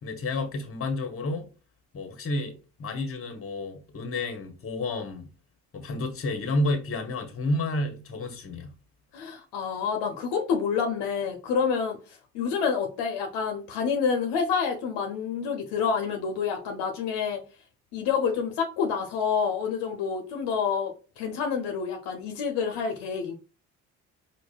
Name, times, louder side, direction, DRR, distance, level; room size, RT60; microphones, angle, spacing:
voice 1, 0.0-1.5 1.9-2.5 2.8-5.3 5.7-8.7, left 2 dB, 30° left, 0.9 m, -30 dB
voice 2, 9.1-12.0 12.3-17.4 17.9-23.3, left 6 dB, 65° left, 0.7 m, -28 dB
4.8 x 2.1 x 2.3 m
hypercardioid pair, 50°, 45 cm